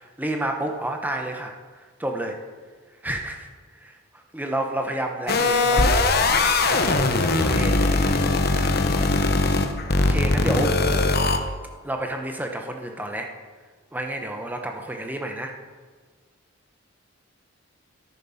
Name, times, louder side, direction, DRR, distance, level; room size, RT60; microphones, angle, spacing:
voice 1, 0.0-2.4 3.0-3.5 3.8-6.0 6.7-8.1 10.0-10.8 11.8-13.3 13.9-15.5, right 1 dB, 10° right, 3 dB, 1.1 m, -30 dB
sound 1, 5.3-11.4, left 2 dB, 45° left, 1.0 m, -20 dB
13.5 x 9.1 x 5.9 m, 1.5 s
head